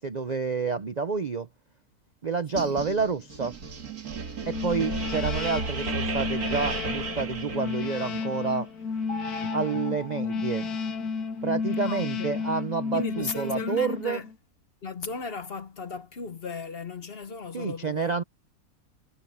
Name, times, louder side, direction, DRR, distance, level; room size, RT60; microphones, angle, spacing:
voice 1, 0.0-1.5 2.2-3.5 4.5-8.7 9.5-10.7 11.4-14.2 17.5-18.2, right 5 dB, 45° right, 0.6 m, -29 dB
voice 2, 2.5-2.8 11.8-12.5 12.9-14.3 14.8-18.2, left 4 dB, 45° left, 1.1 m, -36 dB
sound 1, 2.6-8.2, right 4 dB, 80° right, 2.4 m, -34 dB
sound 2, 4.4-14.3, left 5 dB, 85° left, 1.8 m, -32 dB
sound 3, 9.1-11.5, left 1 dB, 65° left, 1.9 m, -42 dB
omnidirectional pair, 1.6 m